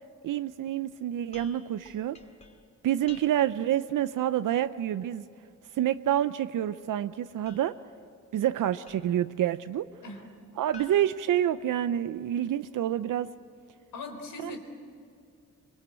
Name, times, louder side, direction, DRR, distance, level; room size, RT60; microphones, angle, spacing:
voice 1, 0.2-2.2 2.8-5.3 5.7-7.7 8.3-9.9 10.6-13.3 14.4-14.6, right 11 dB, 75° right, 12 dB, 0.6 m, -28 dB
sound 1, 1.3-3.7 7.4-9.3 10.7-12.2, left 3 dB, 20° left, 2.1 m, -54 dB
voice 2, 13.9-14.6, left 3 dB, 90° left, 3 dB, 4.1 m, -40 dB
24.5 x 22.5 x 8.9 m, 2.4 s
cardioid pair, 110°, 32 cm